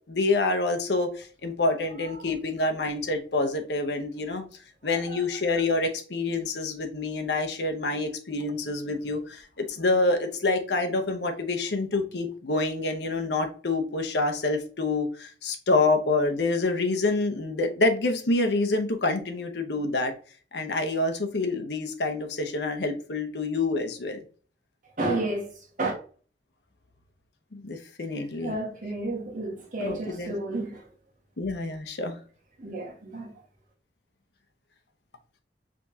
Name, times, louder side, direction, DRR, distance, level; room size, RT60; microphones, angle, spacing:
voice 1, 0.1-4.4 4.8-20.1 20.5-24.2 27.5-28.6 29.8-30.3 31.4-32.2, left 2 dB, 70° left, 0.8 m, -27 dB
voice 2, 4.8-5.2 25.0-25.9 28.2-30.9 32.6-33.3, right 2 dB, 50° right, 1.6 m, -32 dB
5.0 x 3.6 x 2.8 m
head